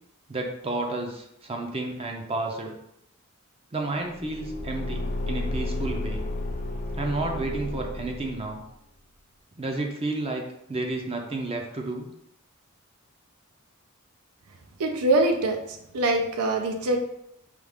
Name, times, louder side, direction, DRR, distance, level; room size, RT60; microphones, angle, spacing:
voice 1, 0.3-2.7 3.7-6.3 6.9-8.6 9.6-10.4 10.7-12.1, right 2 dB, 25° right, 2 dB, 0.5 m, -31 dB
Car / Engine, 4.1-8.6, left 1 dB, 35° left, 0.4 m, -32 dB
voice 2, 14.8-15.6 15.9-17.1, right 2 dB, 90° right, 4 dB, 0.5 m, -23 dB
4.8 x 2.4 x 3.4 m, 0.76 s
head